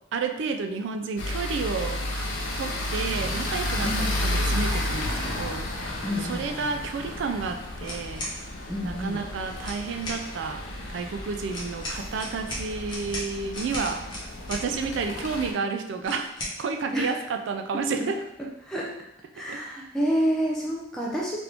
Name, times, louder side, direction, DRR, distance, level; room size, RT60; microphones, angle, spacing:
voice 1, 0.1-2.3 2.6-8.3 8.8-10.7 10.9-14.1 14.5-16.3 16.6-18.2 19.5-19.6, right 4 dB, 70° right, 5 dB, 0.3 m, -31 dB
sound 1, 1.2-15.5, left 1 dB, 80° left, 0.6 m, -32 dB
voice 2, 3.8-4.1 6.0-6.5 8.6-9.2 16.9-17.1 18.6-18.9 19.3-21.4, equal, 5° left, -4 dB, 0.4 m, -28 dB
sound 2, 7.8-8.4 9.6-10.2 11.5-14.7 16.0-16.6, left 1 dB, 25° left, 0.8 m, -35 dB
3.0 x 2.5 x 3.2 m, 0.80 s
head